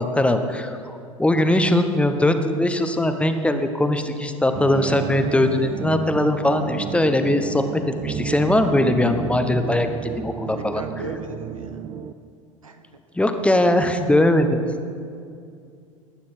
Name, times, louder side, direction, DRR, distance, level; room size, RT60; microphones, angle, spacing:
voice 1, 0.0-10.8 13.1-14.6, left 1 dB, 5° left, 7 dB, 1.0 m, -20 dB
sound 1, 4.6-12.1, right 8 dB, 30° right, 0.6 m, -31 dB
voice 2, 10.7-11.8 12.6-12.8, right 3 dB, 80° right, 6 dB, 1.1 m, -36 dB
18.5 x 9.3 x 4.4 m, 2.4 s
figure-of-eight pair, 75°, 17 cm